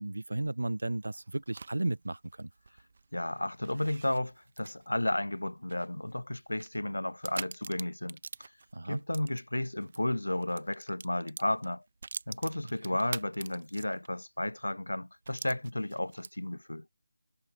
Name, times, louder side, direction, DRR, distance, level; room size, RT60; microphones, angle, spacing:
voice 1, 0.0-2.5 8.7-9.0 12.8-13.0, right 2 dB, 65° right, 0.8 m, -34 dB
sound 1, 0.8-10.0 10.3-14.2 14.6-14.7 15.2-16.6, right 4 dB, 40° right, 1.2 m, -46 dB
voice 2, 3.1-8.2 8.9-11.8 12.3-16.9, left 1 dB, 70° left, 0.3 m, -33 dB
figure-of-eight pair, 160°, 0 cm